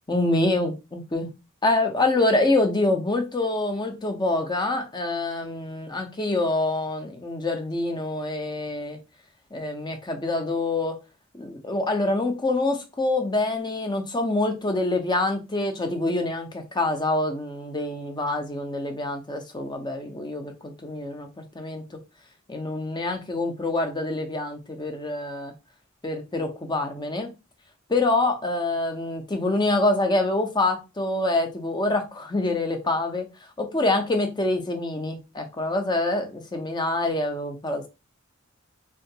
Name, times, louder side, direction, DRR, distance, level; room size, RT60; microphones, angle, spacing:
voice 1, 0.1-1.3 1.6-9.0 9.5-11.0 11.3-22.0 22.5-25.5 26.0-27.3 27.9-33.3 33.6-37.9, left 2 dB, 20° left, 0.7 m, -26 dB
3.4 x 2.5 x 2.8 m
head